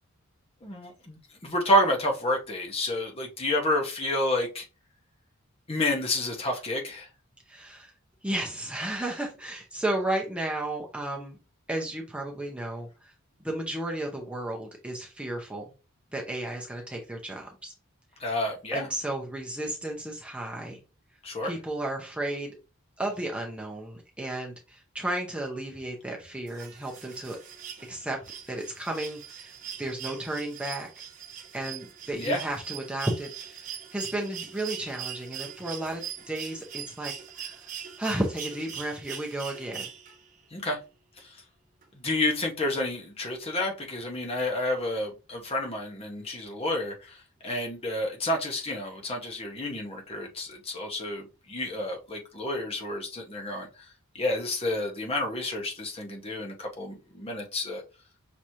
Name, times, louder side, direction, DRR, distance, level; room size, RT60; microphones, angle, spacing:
voice 1, 0.6-1.2 1.4-4.6 5.7-7.1 18.2-18.9 21.2-21.5 32.1-32.4 40.5-40.8 41.2-41.3 42.0-47.2 47.4-53.7 54.1-57.8, left 1 dB, 25° left, 1 dB, 1.0 m, -29 dB
voice 2, 7.5-7.9 8.2-11.4 11.7-13.1 13.4-15.7 16.1-17.7 18.7-20.8 21.4-22.6 23.0-27.4 27.9-28.2 28.5-29.5 29.8-30.9 31.5-37.7 38.0-39.9, right 1 dB, 5° right, -1 dB, 0.7 m, -33 dB
sound 1, 26.5-40.4 41.8-41.9, right 9 dB, 35° right, 0.9 m, -41 dB
6.1 x 3.0 x 2.8 m, 0.31 s
head